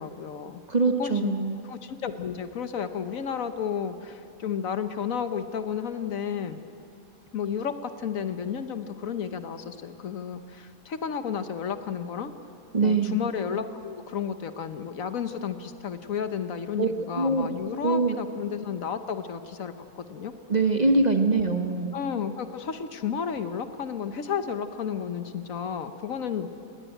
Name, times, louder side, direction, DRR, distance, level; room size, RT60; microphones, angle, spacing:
voice 1, 0.0-0.6 1.0-1.3 1.7-6.6 7.3-12.3 12.8-20.3 21.3-21.5 21.9-26.5, left 7 dB, 65° left, 9 dB, 1.3 m, -32 dB
voice 2, 0.7-1.6 12.7-13.2 16.8-16.9 17.2-17.5 17.8-18.2 20.5-22.0, right 3 dB, 30° right, 5 dB, 1.1 m, -23 dB
19.5 x 17.5 x 9.0 m, 2.4 s
omnidirectional pair, 1.6 m